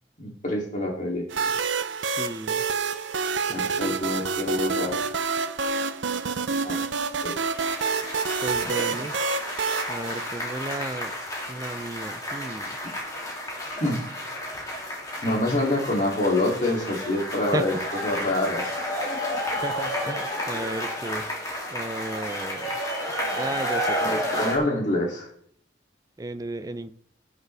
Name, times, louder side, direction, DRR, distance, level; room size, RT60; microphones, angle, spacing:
voice 1, 0.2-1.5 3.5-5.0 6.6-6.8 7.2-7.3 12.8-13.0 13.7-14.0 15.2-17.7 18.0-18.7 24.0-25.3, left 1 dB, 40° left, -2 dB, 2.9 m, -26 dB
sound 1, 1.3-10.9, right 5 dB, 75° right, 0.7 m, -28 dB
voice 2, 2.0-2.6 3.5-3.8 8.4-9.1 9.9-11.1 11.5-12.8 17.5-17.6 19.6-21.2 21.7-22.7 23.3-24.2 26.2-26.9, right 2 dB, 20° right, 11 dB, 0.5 m, -34 dB
sound 2, 7.4-24.6, equal, 20° left, 2.8 m, -31 dB
17.5 x 6.6 x 3.4 m, 0.63 s
head